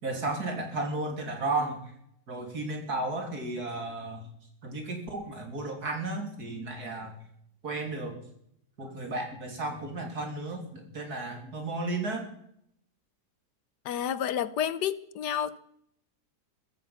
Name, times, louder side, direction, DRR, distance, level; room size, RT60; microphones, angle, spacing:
voice 1, 0.0-1.9 2.3-4.3 4.6-7.1 7.6-8.2 8.8-12.3, right 2 dB, 65° right, 3.7 m, -33 dB
voice 2, 13.8-15.6, left 9 dB, 80° left, 1.4 m, -30 dB
15.0 x 14.5 x 5.8 m
omnidirectional pair, 1.8 m